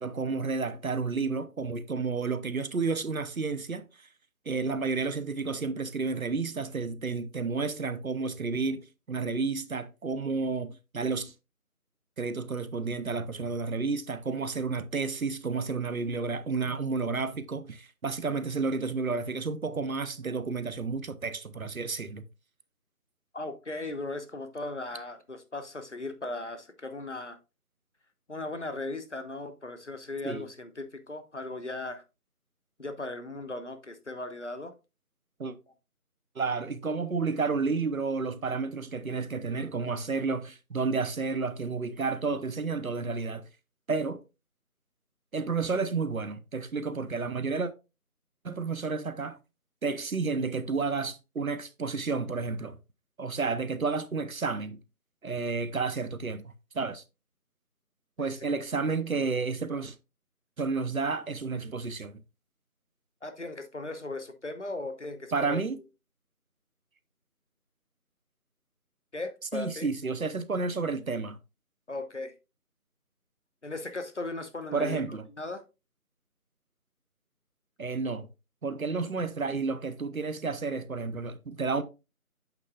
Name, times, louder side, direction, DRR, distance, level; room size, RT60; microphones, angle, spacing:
voice 1, 0.0-3.8 4.5-11.3 12.2-22.2 30.2-30.5 35.4-35.6 36.4-43.4 43.9-44.2 45.3-47.7 48.4-49.4 49.8-52.8 53.2-54.8 55.2-56.4 56.7-57.0 58.2-59.9 60.6-62.2 65.3-65.8 69.5-71.4 74.7-75.2 77.8-78.3 78.6-81.8, right 4 dB, 65° right, 0.8 m, -31 dB
voice 2, 23.3-27.4 28.3-32.0 32.8-34.7 58.2-58.4 63.2-65.6 69.1-69.9 71.9-72.3 73.6-75.0 75.4-75.6, left 2 dB, 50° left, 1.1 m, -37 dB
8.3 x 6.7 x 2.3 m
figure-of-eight pair, 175°, 45 cm